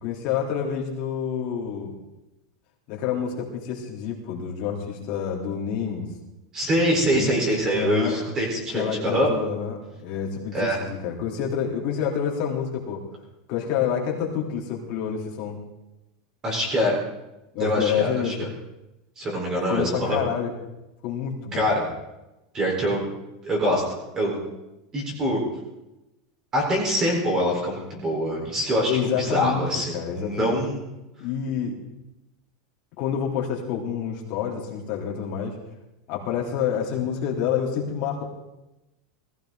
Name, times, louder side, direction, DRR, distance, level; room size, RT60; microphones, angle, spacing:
voice 1, 0.0-2.0 2.9-6.1 7.1-7.3 7.7-8.2 8.7-13.0 13.5-15.6 17.5-18.5 19.7-20.5 21.0-21.9 25.1-25.2 28.9-29.7 29.9-30.6 31.2-31.7 33.0-35.6 36.1-38.2, left 8 dB, 40° left, -2 dB, 3.4 m, -28 dB
voice 2, 6.5-9.3 10.5-10.8 16.4-16.9 17.6-18.3 19.2-20.2 21.5-21.7 22.5-23.0 23.4-24.4 24.9-25.4 26.5-30.8, equal, 20° right, -1 dB, 4.4 m, -24 dB
19.5 x 15.5 x 3.9 m, 0.97 s
supercardioid pair, 175°, 3 cm